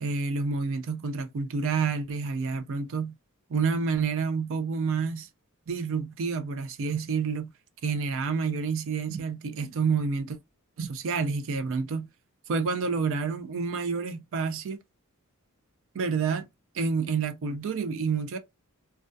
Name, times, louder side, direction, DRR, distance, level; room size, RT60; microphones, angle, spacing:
voice 1, 0.0-3.1 3.5-5.3 5.7-7.5 7.8-10.4 10.8-12.1 12.5-14.8 15.9-16.5 16.7-18.4, right 5 dB, 60° right, 0.4 m, -29 dB
2.2 x 2.2 x 2.5 m
head